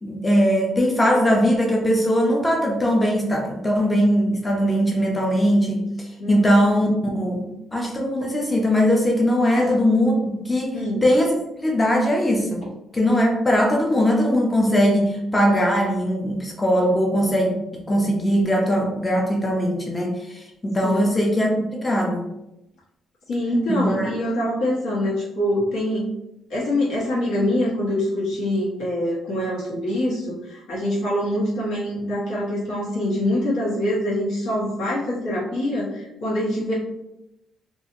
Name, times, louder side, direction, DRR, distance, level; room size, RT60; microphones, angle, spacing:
voice 1, 0.0-12.6 12.9-22.3 23.7-24.1, equal, 20° left, -1 dB, 0.6 m, -20 dB
voice 2, 6.2-6.6 9.5-9.8 10.7-11.0 20.8-21.1 23.3-26.1 26.5-36.7, left 1 dB, 80° left, -6 dB, 1.2 m, -24 dB
2.7 x 2.4 x 2.6 m, 0.90 s
cardioid pair, 90°, 0 cm